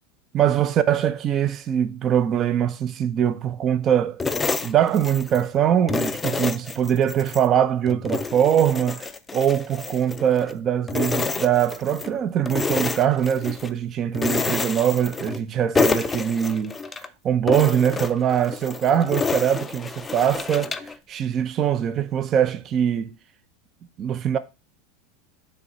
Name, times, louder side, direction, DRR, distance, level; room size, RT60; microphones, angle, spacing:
voice 1, 0.3-4.2 4.6-16.8 17.2-23.1 24.0-24.4, right 9 dB, 35° right, 0.5 m, -22 dB
sound 1, 4.2-5.5 5.9-7.5 7.9-10.6 10.9-12.1 12.5-13.7 14.1-15.5 15.7-17.1 17.5-20.9, left 4 dB, 15° left, 0.4 m, -28 dB
6.7 x 3.3 x 4.7 m
supercardioid pair, 125°, 0 cm